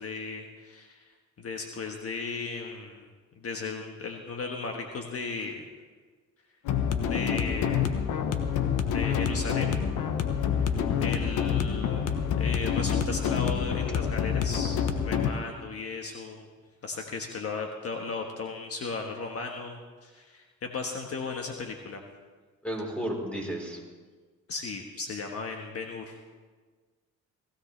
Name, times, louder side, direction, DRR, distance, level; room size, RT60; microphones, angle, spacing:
voice 1, 0.0-3.1 3.4-5.6 7.0-8.0 8.9-9.7 10.6-14.8 15.0-16.5 16.8-22.0 24.5-26.2, left 4 dB, 50° left, 2 dB, 1.4 m, -36 dB
sound 1, 6.7-15.3, left 7 dB, 90° left, 1.1 m, -27 dB
voice 2, 10.8-11.1 11.7-11.9 22.6-23.8, equal, 5° left, -1 dB, 4.1 m, -34 dB
19.5 x 16.0 x 3.3 m, 1.4 s
cardioid pair, 90°, 30 cm